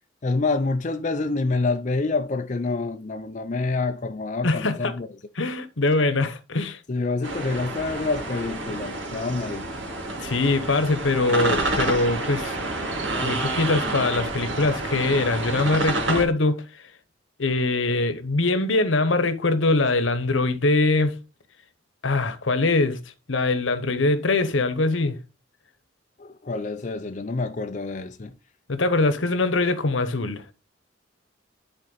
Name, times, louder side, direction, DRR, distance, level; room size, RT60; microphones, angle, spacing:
voice 1, 0.2-5.1 6.9-9.7 26.2-28.3, left 3 dB, 40° left, 0.5 m, -27 dB
voice 2, 4.4-4.9 5.4-6.8 10.2-12.6 13.2-16.6 17.4-21.1 22.0-23.0 23.3-25.2 28.7-30.4, left 2 dB, 80° left, 1.0 m, -22 dB
sound 1, 7.2-16.2, right 2 dB, 75° right, 2.1 m, -29 dB
10.5 x 4.3 x 4.0 m
head